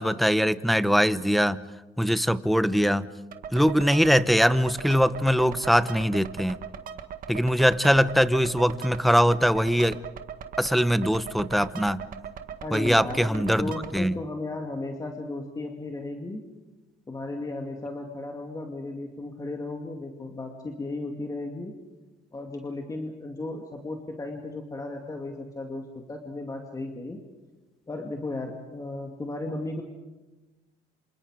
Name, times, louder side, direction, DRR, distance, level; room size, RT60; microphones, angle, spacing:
voice 1, 0.0-1.6 2.0-3.1 3.5-6.6 7.3-10.0 10.6-12.0 12.7-14.2, equal, ahead, 13 dB, 0.9 m, -22 dB
sound 1, 3.3-14.0, right 8 dB, 55° right, 1.8 m, -40 dB
voice 2, 12.6-16.4 17.1-21.7 22.3-27.2 27.9-29.8, left 2 dB, 20° left, 2 dB, 2.3 m, -35 dB
27.5 x 27.0 x 5.0 m, 1.2 s
cardioid pair, 110°, 17 cm